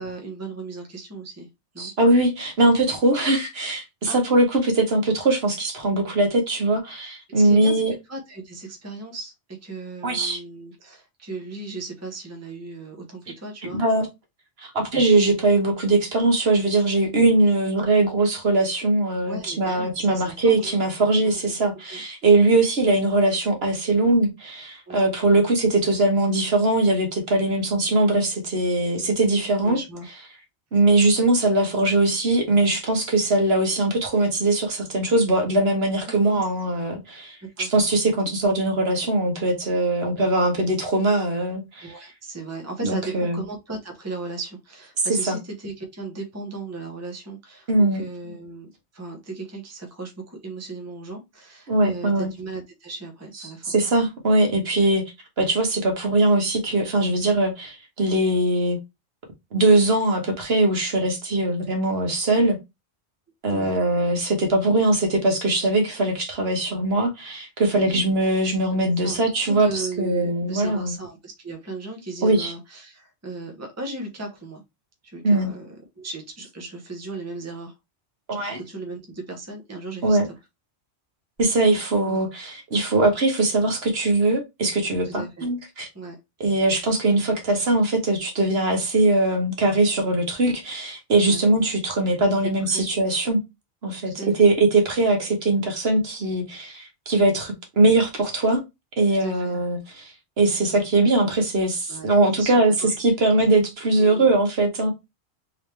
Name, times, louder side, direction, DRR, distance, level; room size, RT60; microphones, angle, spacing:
voice 1, 0.0-1.5 1.7-1.9 2.9-3.0 4.1-4.2 7.3-13.8 19.3-20.8 21.2-21.6 21.9-22.0 24.9-25.0 29.0-30.1 36.1-36.4 37.6-37.7 41.8-48.7 48.9-53.7 54.5-54.7 63.5-63.7 67.7-68.1 68.7-69.2 69.4-74.6 75.0-77.7 78.3-80.2 85.0-85.5 85.9-86.2 91.2-91.4 92.7-92.8 94.0-94.3 99.2-99.6 101.9-102.1 102.4-102.9 104.0-104.3, right 3 dB, 15° right, 0.9 m, -36 dB
voice 2, 1.8-7.9 10.0-10.4 13.7-14.1 14.6-29.8 30.7-41.9 42.8-43.4 45.3-45.4 47.7-48.0 51.7-52.3 53.6-55.0 55.4-58.8 59.5-62.6 63.4-71.0 72.2-72.5 75.2-75.5 78.3-78.6 80.0-80.3 81.4-85.9 86.4-93.4 93.8-98.6 99.0-104.9, right 2 dB, 60° right, 1.4 m, -21 dB
3.7 x 3.1 x 3.3 m
omnidirectional pair, 1.2 m